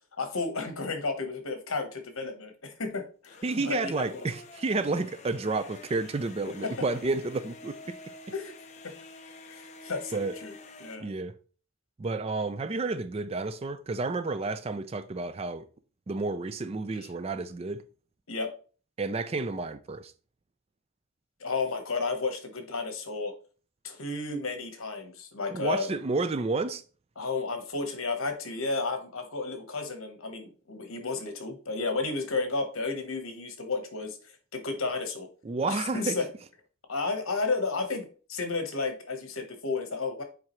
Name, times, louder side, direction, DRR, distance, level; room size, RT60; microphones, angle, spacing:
voice 1, 0.2-4.3 6.5-6.7 8.3-8.5 8.8-8.9 9.5-10.5 10.8-11.1 18.3-18.5 21.4-23.3 23.8-25.9 27.2-35.3 35.6-36.2 36.9-40.2, left 3 dB, 70° left, 1.2 m, -32 dB
sound 1, 3.2-11.0, left 2 dB, 30° left, 0.6 m, -48 dB
voice 2, 3.4-8.0 10.1-10.4 11.0-11.3 12.0-15.7 16.1-17.8 19.0-20.1 25.5-26.8 35.4-36.2, right 3 dB, 30° right, 0.3 m, -31 dB
7.3 x 4.7 x 3.1 m
head